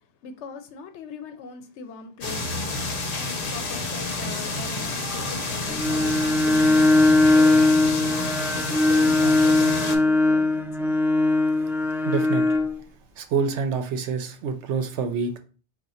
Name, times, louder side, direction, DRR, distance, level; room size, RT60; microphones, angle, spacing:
voice 1, 0.2-2.6 3.1-7.8 8.5-11.0, left 4 dB, 80° left, 0.9 m, -40 dB
sound 1, 2.2-10.0, left 2 dB, 55° left, 0.9 m, -29 dB
Bowed string instrument, 5.7-12.7, left 2 dB, 5° right, 0.5 m, -20 dB
voice 2, 12.1-12.4 13.2-15.4, right 5 dB, 85° right, 0.9 m, -26 dB
3.7 x 2.4 x 4.1 m
omnidirectional pair, 1.2 m